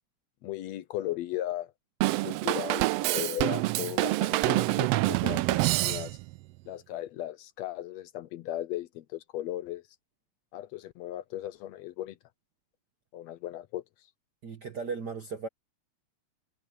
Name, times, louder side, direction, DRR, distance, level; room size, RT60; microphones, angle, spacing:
voice 1, 0.4-1.7 2.2-5.4 5.7-6.2 6.7-9.8 10.5-12.2 13.1-13.8, left 13 dB, 75° left, 1.8 m, -36 dB
Drum kit / Drum, 2.0-6.4, right 19 dB, 85° right, 1.4 m, -26 dB
voice 2, 14.4-15.5, right 5 dB, 60° right, 1.1 m, -36 dB
omnidirectional pair, 3.3 m